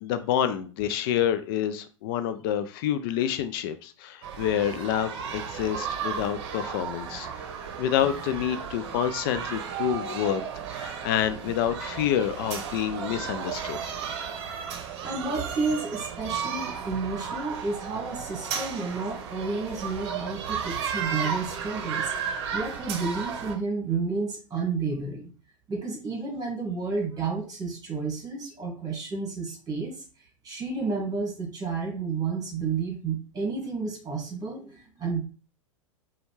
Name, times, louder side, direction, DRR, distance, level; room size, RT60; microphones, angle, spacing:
voice 1, 0.0-7.3 7.8-10.4 10.7-13.8, left 10 dB, 45° left, 11 dB, 0.4 m, -28 dB
sound 1, 4.2-23.6, right 7 dB, 50° right, 0.8 m, -34 dB
voice 2, 15.0-25.3 25.7-30.0 30.4-35.2, right 4 dB, 20° right, 0 dB, 1.7 m, -31 dB
4.9 x 2.3 x 3.1 m, 0.37 s
figure-of-eight pair, 95°, 17 cm